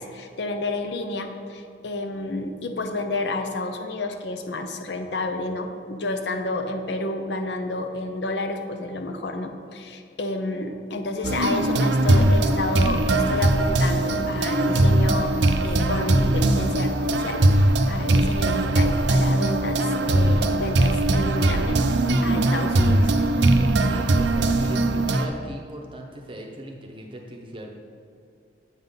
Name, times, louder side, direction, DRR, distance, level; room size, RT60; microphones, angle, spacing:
voice 1, 0.0-15.3 15.6-21.8 22.2-23.1, left 2 dB, 65° left, 6 dB, 0.6 m, -30 dB
sound 1, 11.2-25.3, right 2 dB, 70° right, 0.5 m, -20 dB
voice 2, 23.6-27.7, right 1 dB, 30° right, 1 dB, 0.8 m, -39 dB
8.1 x 3.8 x 5.6 m, 2.4 s
head